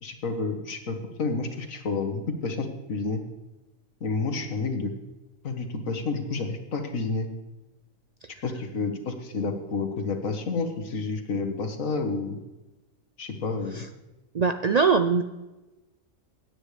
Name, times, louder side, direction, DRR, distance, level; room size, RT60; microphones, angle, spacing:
voice 1, 0.0-3.2 4.0-4.9 5.4-7.3 8.4-12.4 13.2-13.9, left 3 dB, 80° left, 4 dB, 1.8 m, -30 dB
voice 2, 14.3-15.2, right 5 dB, 75° right, 8 dB, 0.3 m, -22 dB
17.0 x 9.7 x 3.3 m, 1.0 s
omnidirectional pair, 1.4 m